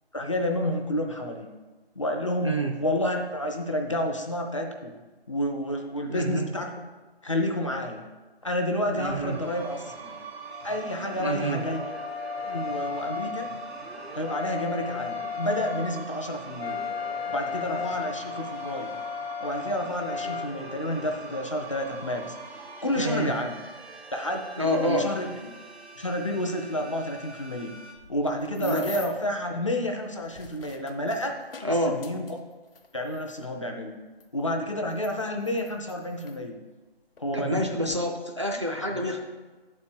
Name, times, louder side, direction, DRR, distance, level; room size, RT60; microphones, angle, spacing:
voice 1, 0.1-1.5 2.0-4.9 5.3-6.7 7.2-8.0 8.4-10.2 10.6-11.8 12.5-13.5 14.1-16.8 17.3-18.9 19.4-22.4 22.8-23.6 24.1-25.3 26.0-27.7 28.1-31.4 31.9-32.4 32.9-34.0 34.3-36.6 37.2-37.8 38.7-39.1, left 1 dB, 30° left, 2 dB, 0.5 m, -30 dB
voice 2, 2.4-2.8 6.1-6.5 8.9-9.4 11.2-11.6 23.0-23.3 24.6-25.1 28.6-28.9 31.6-32.0 37.3-39.2, equal, 30° right, 1 dB, 0.4 m, -27 dB
sound 1, 9.1-27.9, right 3 dB, 85° right, 1.5 m, -42 dB
Wind instrument woodwind instrument, 10.5-20.5, left 7 dB, 85° left, 0.5 m, -35 dB
sound 2, 28.0-29.3 30.1-33.4 34.2-34.3 34.9-36.4 37.2-37.3 37.6-38.0, left 4 dB, 65° left, 0.9 m, -45 dB
7.1 x 4.3 x 6.4 m, 1.2 s
figure-of-eight pair, 165°, 31 cm